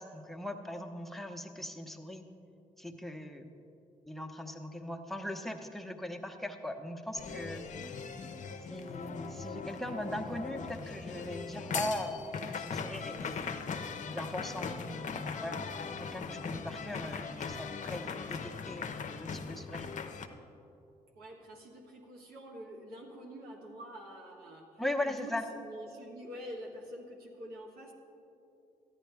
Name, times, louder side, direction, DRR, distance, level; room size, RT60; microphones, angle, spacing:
voice 1, 0.0-2.2 2.8-3.5 4.1-7.7 8.7-13.5 14.0-15.6 15.9-19.9 24.8-25.4, left 1 dB, ahead, 3 dB, 1.0 m, -39 dB
sound 1, 7.1-20.3, left 5 dB, 50° left, 0.7 m, -39 dB
voice 2, 21.1-27.9, equal, 80° right, 0 dB, 1.4 m, -46 dB
13.0 x 10.5 x 3.4 m, 2.9 s
supercardioid pair, 55°, 16 cm